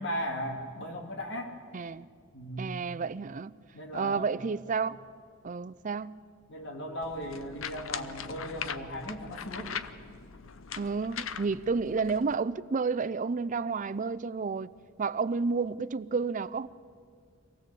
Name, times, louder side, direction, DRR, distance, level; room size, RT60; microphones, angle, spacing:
voice 1, 0.0-1.5 2.3-2.7 3.7-4.3 6.5-9.8, equal, 60° left, 2.6 m, -37 dB
voice 2, 1.7-2.1 2.6-3.5 3.9-5.0 5.4-6.2 10.8-14.7 15.0-16.7, right 4 dB, 40° right, 0.5 m, -31 dB
sound 1, 7.0-12.3, left 7 dB, 80° left, 0.8 m, -40 dB
24.5 x 17.0 x 8.4 m
head